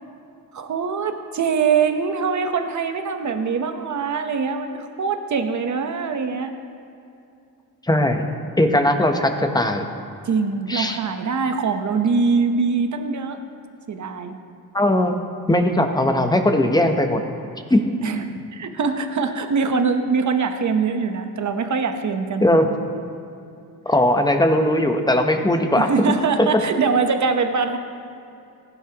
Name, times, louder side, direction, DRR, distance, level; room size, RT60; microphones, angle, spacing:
voice 1, 0.5-6.5 10.2-13.4 13.9-14.4 18.0-22.6 25.8-27.8, right 5 dB, 45° right, 7 dB, 1.0 m, -23 dB
voice 2, 7.8-8.3 8.6-9.9 10.7-11.0 14.7-15.2 15.5-17.2 17.7-17.9 22.4-22.7 23.9-25.9 26.4-26.6, left 1 dB, 10° left, 5 dB, 0.8 m, -19 dB
16.0 x 10.5 x 2.9 m, 2.6 s
cardioid pair, 110°, 40 cm